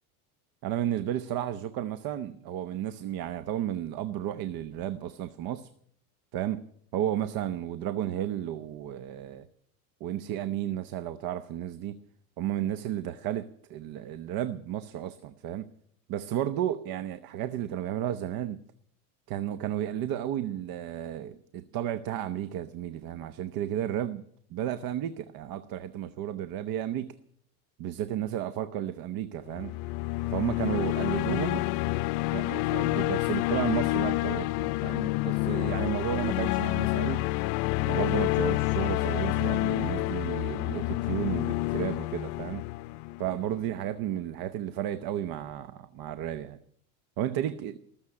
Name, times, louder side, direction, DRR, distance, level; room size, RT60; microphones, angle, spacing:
voice 1, 0.6-5.7 6.3-6.6 6.9-9.5 10.0-12.0 12.4-15.7 16.1-18.6 19.3-24.2 24.5-27.1 27.8-29.7 30.3-31.7 32.3-37.2 37.8-42.6 43.2-46.6 47.2-47.8, right 11 dB, 50° right, 13 dB, 0.8 m, -33 dB
sound 1, 29.5-43.7, left 19 dB, 70° left, 0.6 m, -28 dB
19.5 x 7.3 x 9.9 m, 0.68 s
supercardioid pair, 115°, 46 cm